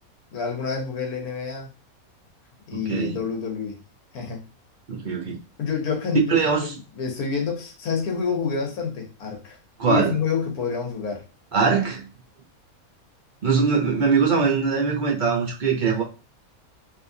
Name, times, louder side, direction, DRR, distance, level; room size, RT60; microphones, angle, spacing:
voice 1, 0.3-1.7 2.7-3.8 4.1-4.4 5.6-9.6 9.8-11.2 11.6-11.7, left 5 dB, 85° left, 2 dB, 1.4 m, -28 dB
voice 2, 2.7-3.2 4.9-5.4 6.3-6.7 9.8-10.1 11.5-12.1 13.4-16.0, right 5 dB, 45° right, -1 dB, 0.7 m, -22 dB
3.5 x 2.7 x 2.6 m, 0.32 s
omnidirectional pair, 1.5 m